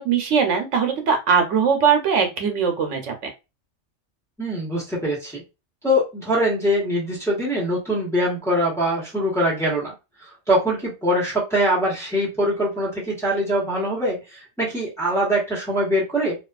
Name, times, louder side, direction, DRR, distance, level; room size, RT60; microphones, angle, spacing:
voice 1, 0.0-3.3, right 6 dB, 80° right, 4 dB, 1.0 m, -20 dB
voice 2, 4.4-5.4 5.8-9.9 10.2-16.4, equal, ahead, -5 dB, 1.0 m, -23 dB
2.6 x 2.3 x 2.3 m, 0.26 s
omnidirectional pair, 1.3 m